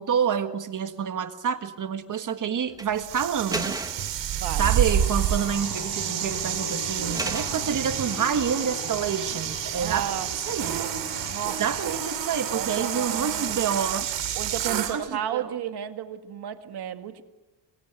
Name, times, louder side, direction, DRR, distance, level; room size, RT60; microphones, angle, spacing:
voice 1, 0.0-3.8 4.6-10.8 11.6-14.1 14.7-15.5, right 7 dB, 45° right, 9 dB, 1.7 m, -28 dB
sound 1, 2.7-2.9 3.5-4.2 5.5-6.0 6.3-6.4 7.1-7.6 8.2-8.8 10.5-10.9, right 2 dB, 10° right, 1.3 m, -35 dB
sound 2, 3.0-15.0, right 10 dB, 85° right, 2.5 m, -29 dB
voice 2, 4.3-4.7 9.8-10.3 11.3-12.0 12.5-13.5 14.4-17.2, right 10 dB, 65° right, 8 dB, 1.9 m, -33 dB
sound 3, 4.7-13.5, left 6 dB, 55° left, 2.7 m, -40 dB
26.5 x 21.5 x 9.1 m, 1.1 s
cardioid pair, 155°, 43 cm